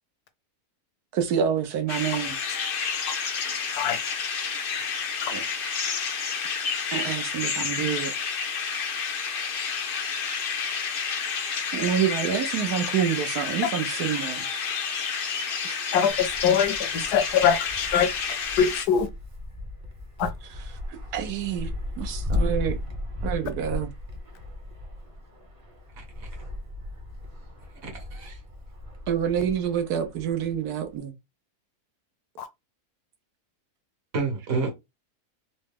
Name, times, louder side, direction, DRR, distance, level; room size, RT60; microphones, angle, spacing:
voice 1, 1.1-2.4 5.3-5.8 6.9-8.1 11.7-14.5 15.6-15.8 21.1-21.7 22.0-22.8 23.2-23.9 29.1-31.1, right 8 dB, 80° right, 1.3 m, -27 dB
sound 1, 1.9-18.9, left 6 dB, 65° left, 0.5 m, -30 dB
voice 2, 15.9-18.1 18.6-19.1 20.2-20.3 32.4-32.5, left 8 dB, 80° left, 1.2 m, -23 dB
Wind, 16.1-31.0, left 2 dB, 25° right, 0.8 m, -36 dB
voice 3, 26.0-26.3 27.8-28.4 34.1-34.7, right 4 dB, 60° right, 1.6 m, -30 dB
3.9 x 2.2 x 3.6 m
omnidirectional pair, 1.7 m